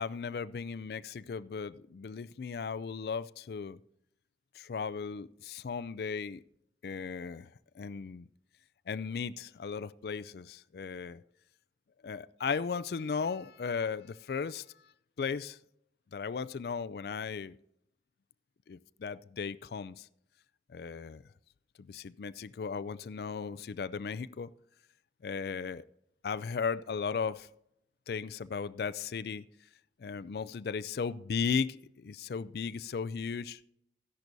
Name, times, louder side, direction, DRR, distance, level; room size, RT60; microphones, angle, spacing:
voice 1, 0.0-3.8 4.6-6.4 6.8-7.5 7.8-8.3 8.9-11.2 12.0-14.7 15.2-15.6 16.1-17.6 18.7-20.1 20.7-21.2 21.8-24.5 25.2-25.8 26.2-27.5 28.1-29.4 30.0-33.6, left 5 dB, 60° left, 0.4 m, -36 dB
13.5 x 10.5 x 2.6 m
head